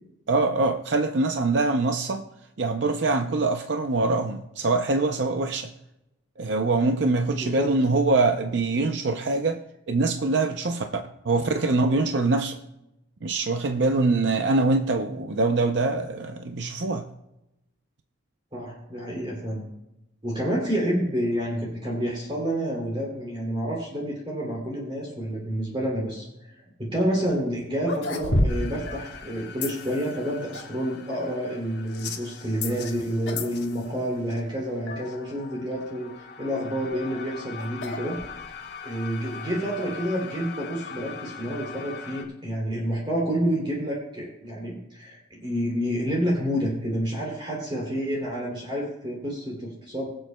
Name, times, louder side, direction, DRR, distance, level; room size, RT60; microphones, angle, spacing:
voice 1, 0.3-2.2 2.6-5.7 6.4-9.6 9.9-10.8 11.2-12.6 13.2-17.1, right 3 dB, 60° right, 0.6 m, -24 dB
voice 2, 7.3-7.7 18.5-19.6 20.2-38.2 38.8-50.1, equal, 25° right, 2.9 m, -29 dB
sound 1, 27.3-27.4 27.8-28.9 29.1-29.3 30.1-30.9 32.7-32.9 33.2-33.6 33.9-34.0 34.7-34.8 36.6-38.7, left 1 dB, 75° left, 1.3 m, -30 dB
sound 2, 28.5-42.2, left 7 dB, 55° left, 1.2 m, -40 dB
23.0 x 7.7 x 2.2 m
head